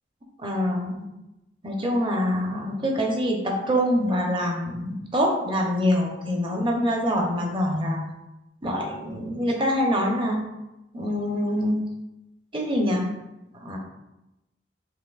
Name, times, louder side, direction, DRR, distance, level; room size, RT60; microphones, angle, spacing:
voice 1, 0.4-1.1 1.6-8.0 8.6-10.4 10.9-11.8 12.5-13.1 13.5-13.8, equal, 30° right, 0 dB, 0.7 m, -25 dB
6.0 x 2.5 x 2.4 m, 0.95 s
head